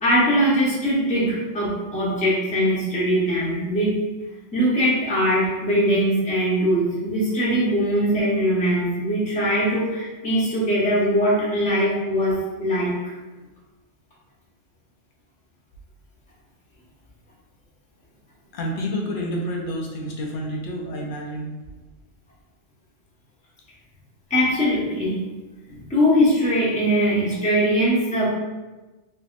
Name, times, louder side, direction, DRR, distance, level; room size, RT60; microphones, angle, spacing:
voice 1, 0.0-3.9 4.5-12.3 12.6-13.1 24.3-25.2 25.9-28.3, equal, 5° left, -7 dB, 0.7 m, -21 dB
voice 2, 18.5-21.5, equal, 55° left, 0 dB, 0.7 m, -29 dB
3.3 x 3.0 x 2.5 m, 1.2 s
omnidirectional pair, 1.3 m